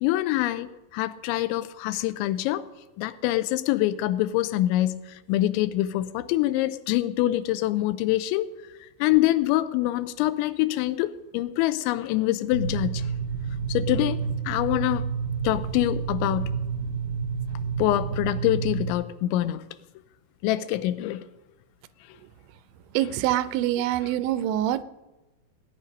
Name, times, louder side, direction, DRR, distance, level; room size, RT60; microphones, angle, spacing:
voice 1, 0.0-2.6 3.0-5.0 5.3-8.5 9.0-13.1 13.7-14.2 14.5-15.1 15.4-16.5 17.8-19.6 20.4-21.2, left 15 dB, 90° left, 3.0 m, -25 dB
sound 1, 12.5-18.9, right 6 dB, 35° right, 1.0 m, -29 dB
voice 2, 22.9-24.8, right 13 dB, 85° right, 2.8 m, -25 dB
18.0 x 9.9 x 5.2 m
omnidirectional pair, 5.2 m